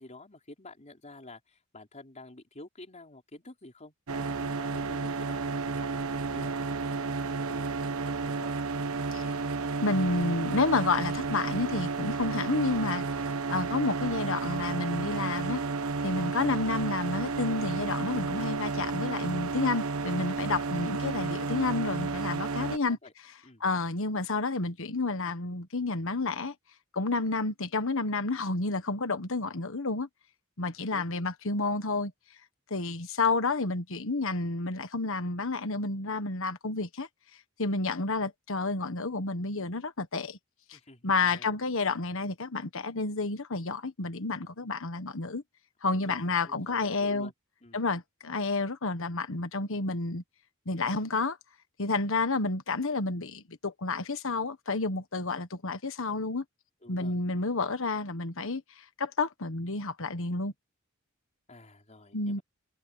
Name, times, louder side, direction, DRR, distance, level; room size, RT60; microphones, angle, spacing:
voice 1, 0.0-5.9 6.3-8.6 22.9-23.1 23.4-23.6 30.7-31.2 40.7-41.6 45.9-47.3 47.6-47.8 56.8-57.2 61.5-62.4, left 2 dB, 35° left, 4.3 m, -50 dB
sound 1, 4.1-22.8, right 4 dB, 80° right, 1.2 m, -32 dB
voice 2, 9.8-13.0 13.5-15.6 16.0-23.0 23.6-26.5 26.9-30.1 30.6-32.1 32.7-37.1 37.6-40.4 40.7-40.8 41.0-45.4 45.8-47.3 47.7-50.2 50.6-51.4 51.8-56.4 56.9-58.6 59.0-60.5 62.1-62.4, left 3 dB, 65° left, 1.5 m, -30 dB
head